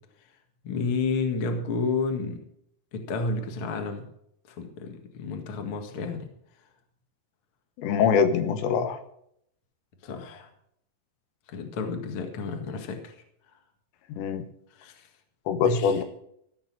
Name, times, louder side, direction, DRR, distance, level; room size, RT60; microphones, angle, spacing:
voice 1, 0.6-2.4 2.9-4.0 4.5-6.3 10.0-10.5 11.5-13.1 14.7-15.1 15.6-16.0, left 4 dB, 55° left, 4 dB, 1.4 m, -31 dB
voice 2, 7.8-9.0 14.1-14.4 15.5-16.0, left 7 dB, 75° left, 8 dB, 3.2 m, -23 dB
16.0 x 6.7 x 7.4 m, 0.72 s
omnidirectional pair, 5.4 m